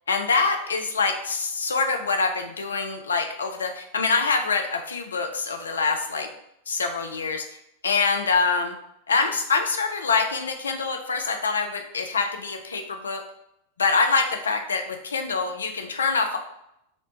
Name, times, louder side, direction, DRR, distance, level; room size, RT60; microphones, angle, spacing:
voice 1, 0.1-6.3 6.7-7.5 7.8-8.7 9.1-13.2 13.8-16.4, left 4 dB, 70° left, 4 dB, 0.3 m, -25 dB
2.8 x 2.0 x 2.8 m, 0.79 s
figure-of-eight pair, 90°, 0 cm